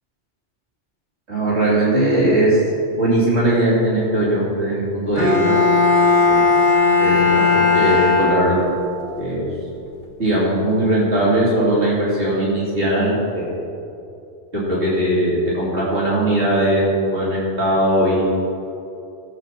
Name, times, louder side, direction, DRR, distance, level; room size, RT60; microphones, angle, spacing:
voice 1, 1.3-2.6 2.9-5.6 6.3-6.4 7.0-8.6 9.2-9.5 10.2-13.5 14.6-18.3, right 1 dB, 75° right, -8 dB, 3.1 m, -19 dB
Bowed string instrument, 5.2-8.9, left 4 dB, 45° left, 2.1 m, -16 dB
16.5 x 7.6 x 4.4 m, 2.7 s
omnidirectional pair, 1.1 m